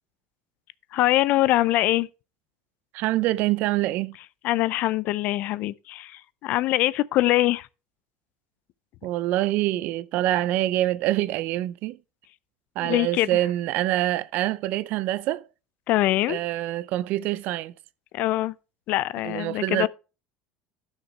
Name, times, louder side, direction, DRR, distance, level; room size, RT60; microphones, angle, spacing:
voice 1, 0.9-2.1 4.4-7.7 12.8-13.4 15.9-16.4 18.1-18.5 18.9-19.9, left 16 dB, 50° left, 0.4 m, -23 dB
voice 2, 2.9-4.2 9.0-12.0 12.8-15.4 16.3-17.7 19.2-19.9, right 15 dB, 55° right, 0.5 m, -25 dB
12.0 x 6.6 x 4.5 m
cardioid pair, 150°, 4 cm